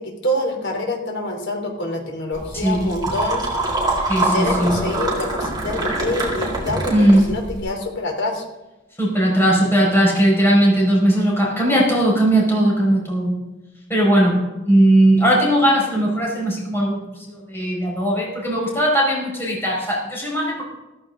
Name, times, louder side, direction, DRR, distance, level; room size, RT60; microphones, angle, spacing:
voice 1, 0.0-3.5 4.1-8.4, left 1 dB, 65° left, 2 dB, 3.3 m, -26 dB
sound 1, 2.3-7.6, right 2 dB, 20° right, 3.9 m, -24 dB
voice 2, 4.1-4.7 6.9-7.3 9.0-13.3 13.9-14.4 14.6-20.6, right 1 dB, 15° left, -4 dB, 5.4 m, -18 dB
16.0 x 15.0 x 3.8 m, 1.1 s
head